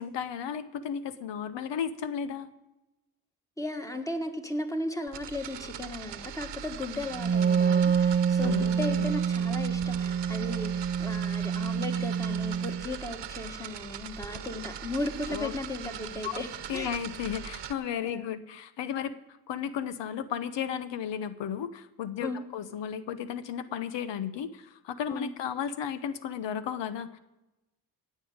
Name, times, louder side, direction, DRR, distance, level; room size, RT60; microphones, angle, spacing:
voice 1, 0.0-2.5 8.4-9.2 15.3-15.5 16.2-16.4 16.7-19.1 19.5-27.2, left 8 dB, 85° left, 12 dB, 0.8 m, -34 dB
voice 2, 3.6-16.5 16.7-16.9 18.0-18.3 22.2-22.4 25.1-25.3, left 1 dB, 10° left, 6 dB, 1.7 m, -36 dB
sound 1, 5.1-17.7, right 9 dB, 75° right, 1.1 m, -41 dB
Wind instrument woodwind instrument, 7.1-12.8, right 7 dB, 20° right, 0.5 m, -27 dB
16.5 x 5.6 x 9.5 m, 0.98 s
cardioid pair, 90°, 42 cm